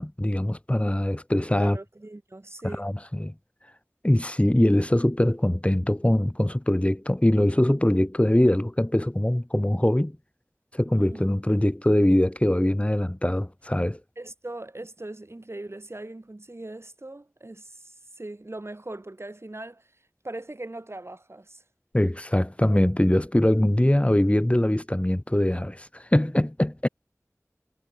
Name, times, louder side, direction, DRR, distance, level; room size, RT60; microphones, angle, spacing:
voice 1, 0.0-1.8 2.8-3.3 4.0-10.2 10.7-14.0 21.9-26.9, left 1 dB, 20° left, 5.8 m, -22 dB
voice 2, 1.5-2.9 10.9-11.2 14.2-19.8 20.2-21.6, right 2 dB, 50° right, 5.2 m, -40 dB
wide cardioid pair, 45°, 5 cm